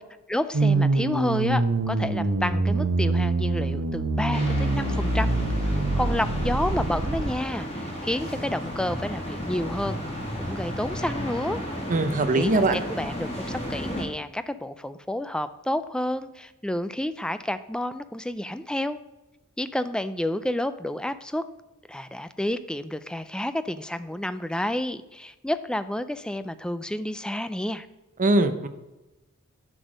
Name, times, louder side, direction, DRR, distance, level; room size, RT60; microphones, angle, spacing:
voice 1, 0.3-5.4 5.6-10.0 10.4-11.6 12.3-19.0 19.6-21.4 21.9-27.9, left 1 dB, 5° left, 12 dB, 0.4 m, -30 dB
sound 1, 0.5-7.3, right 2 dB, 75° right, 1.0 m, -25 dB
sound 2, 4.3-14.0, equal, 25° left, 2.1 m, -33 dB
voice 2, 11.9-12.8 28.2-28.7, right 2 dB, 35° right, 9 dB, 0.7 m, -21 dB
10.0 x 6.2 x 5.1 m, 1.0 s
head